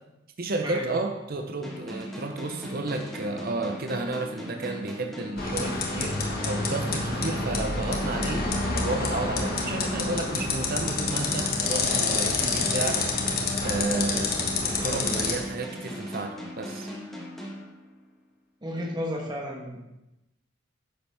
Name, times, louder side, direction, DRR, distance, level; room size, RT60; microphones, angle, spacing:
voice 1, 0.4-8.4 8.7-13.0 13.6-14.4 14.6-16.9, right 2 dB, 45° right, 4 dB, 0.6 m, -32 dB
sound 1, 1.6-18.2, equal, ahead, 1.3 m, -39 dB
sound 2, 5.4-15.3, left 3 dB, 45° left, 1.2 m, -28 dB
voice 2, 18.6-19.8, equal, 20° right, 0 dB, 1.1 m, -32 dB
9.8 x 7.1 x 3.4 m, 0.95 s
head